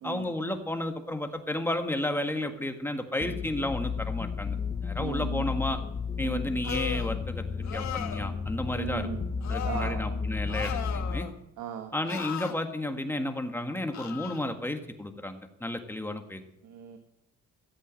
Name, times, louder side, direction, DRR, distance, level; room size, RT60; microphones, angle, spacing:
voice 1, 0.0-4.5 4.8-5.8 6.2-9.1 9.5-11.3 11.9-16.4, left 1 dB, 5° left, 6 dB, 1.7 m, -32 dB
sound 1, 3.2-11.2, left 5 dB, 30° left, 0.9 m, -33 dB
voice 2, 5.0-5.5 6.2-6.4 8.7-9.2 9.6-10.1 11.6-11.9 16.6-17.0, right 9 dB, 85° right, 6 dB, 1.3 m, -37 dB
sound 2, 6.6-7.1 7.6-8.3 9.4-9.9 10.5-11.3 12.0-12.5 13.9-14.4, left 10 dB, 65° left, 1.6 m, -37 dB
14.5 x 8.2 x 7.6 m, 0.87 s
cardioid pair, 90°, 30 cm